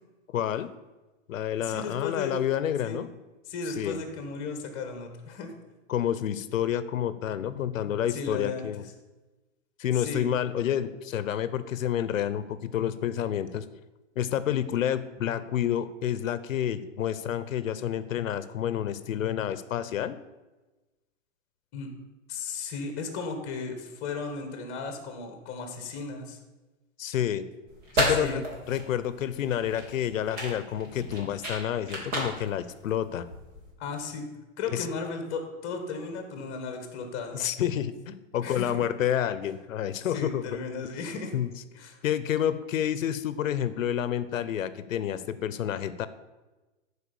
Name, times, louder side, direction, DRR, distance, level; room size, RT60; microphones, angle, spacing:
voice 1, 0.3-0.7 1.3-3.1 3.8-4.0 5.9-8.8 9.8-13.6 14.2-20.2 27.0-27.5 27.9-33.3 34.7-34.9 37.3-40.4 41.3-41.5 42.0-46.1, left 10 dB, 85° left, 14 dB, 0.9 m, -29 dB
voice 2, 1.6-2.4 2.8-3.0 3.5-5.5 8.1-8.7 9.9-10.3 21.7-21.9 22.3-26.4 28.1-28.4 33.8-34.3 34.6-37.4 38.4-38.8 40.1-41.3 41.7-42.0, left 4 dB, 25° left, 6 dB, 1.6 m, -35 dB
sound 1, 27.7-33.7, equal, 20° right, 2.1 m, -33 dB
11.0 x 4.9 x 7.0 m, 1.2 s
hypercardioid pair, 165°, 39 cm